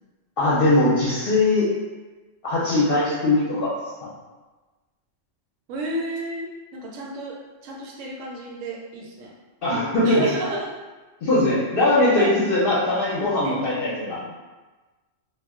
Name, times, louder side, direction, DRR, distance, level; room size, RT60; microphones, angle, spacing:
voice 1, 0.4-1.7 2.4-3.7 9.6-10.3 11.2-14.2, left 2 dB, 55° left, -8 dB, 0.7 m, -20 dB
voice 2, 5.7-9.3 10.0-10.7 11.9-12.3 13.4-13.6 14.0-14.3, right 1 dB, 90° right, -2 dB, 1.0 m, -32 dB
2.3 x 2.1 x 3.5 m, 1.2 s
omnidirectional pair, 1.3 m